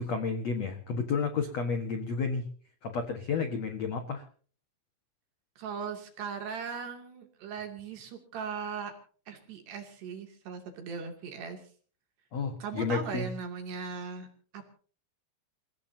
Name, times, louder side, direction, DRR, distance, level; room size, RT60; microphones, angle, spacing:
voice 1, 0.0-2.4 2.8-4.2 12.3-13.3, left 5 dB, 65° left, 6 dB, 1.6 m, -31 dB
voice 2, 5.6-8.9 9.3-11.6 12.6-14.3 14.5-14.6, right 6 dB, 60° right, 4 dB, 4.7 m, -38 dB
29.5 x 17.0 x 2.8 m, 0.43 s
omnidirectional pair, 5.6 m